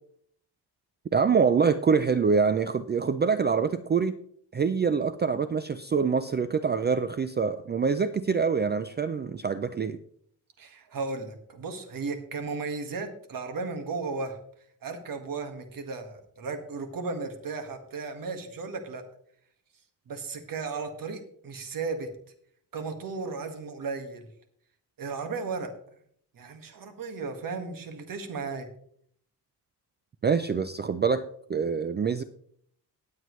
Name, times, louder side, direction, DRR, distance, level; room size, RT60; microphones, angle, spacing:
voice 1, 1.1-4.2 4.5-10.0 30.2-31.2 31.5-32.2, right 5 dB, 30° right, 11 dB, 0.4 m, -25 dB
voice 2, 10.6-14.4 14.8-19.0 20.1-22.1 22.7-24.3 25.0-25.7 26.3-28.7, right 4 dB, 55° right, 6 dB, 1.7 m, -35 dB
19.0 x 7.6 x 3.1 m, 0.64 s
wide cardioid pair, 160°, 39 cm